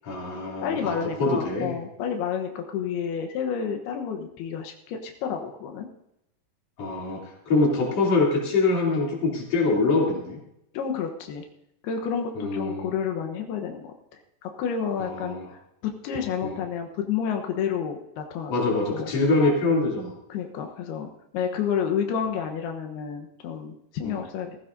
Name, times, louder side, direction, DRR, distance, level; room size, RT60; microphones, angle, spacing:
voice 1, 0.0-1.7 6.8-10.4 12.4-12.9 15.0-15.5 16.4-16.6 18.5-20.1 24.0-24.2, left 3 dB, 45° left, -3 dB, 3.9 m, -24 dB
voice 2, 0.6-5.9 10.7-11.4 11.8-13.9 14.4-15.4 15.8-19.1 20.3-24.6, left 7 dB, 85° left, 4 dB, 3.1 m, -30 dB
18.5 x 15.0 x 2.6 m, 0.82 s
omnidirectional pair, 4.4 m